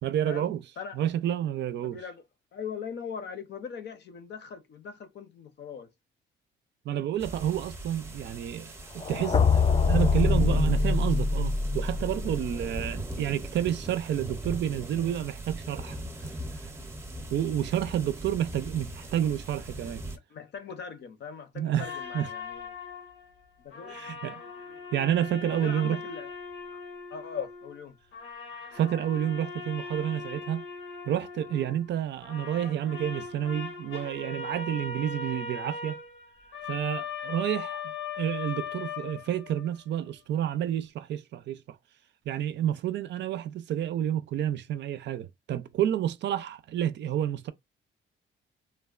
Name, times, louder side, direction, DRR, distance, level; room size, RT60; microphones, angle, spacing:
voice 1, 0.0-0.6 0.9-2.0 6.9-16.0 16.5-16.6 17.3-20.0 21.6-21.9 22.1-22.3 23.9-24.4 24.9-26.0 28.7-30.6 31.1-36.0 36.7-41.6 42.3-47.5, right 11 dB, 65° right, 0.4 m, -30 dB
voice 2, 1.8-2.2 2.5-5.9 20.3-22.7 23.6-24.2 24.7-24.8 25.5-26.3 27.1-28.0, left 6 dB, 60° left, 0.7 m, -40 dB
sound 1, 7.2-20.2, right 1 dB, 15° right, 0.7 m, -40 dB
sound 2, 9.0-13.0, left 4 dB, 25° left, 0.4 m, -24 dB
sound 3, 21.8-23.5 23.7-27.9 28.1-32.0 32.2-39.8, left 5 dB, 85° left, 1.0 m, -39 dB
3.3 x 2.2 x 2.3 m
cardioid pair, 90°, 20 cm